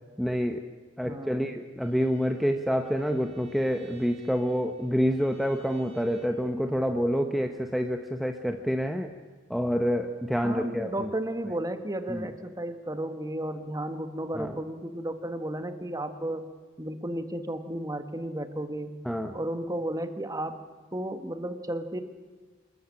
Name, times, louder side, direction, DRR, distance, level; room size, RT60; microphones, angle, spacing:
voice 1, 0.2-0.7 1.0-9.1 9.5-11.1 12.1-12.3 14.3-14.6 19.0-19.3, equal, ahead, 4 dB, 1.0 m, -27 dB
voice 2, 1.0-1.5 10.4-16.5 16.8-18.9 19.3-20.6 20.9-22.0, right 1 dB, 20° right, 9 dB, 1.4 m, -33 dB
Bowed string instrument, 1.8-6.5, right 1 dB, 35° right, 4.9 m, -54 dB
26.5 x 14.0 x 8.8 m, 1.4 s
head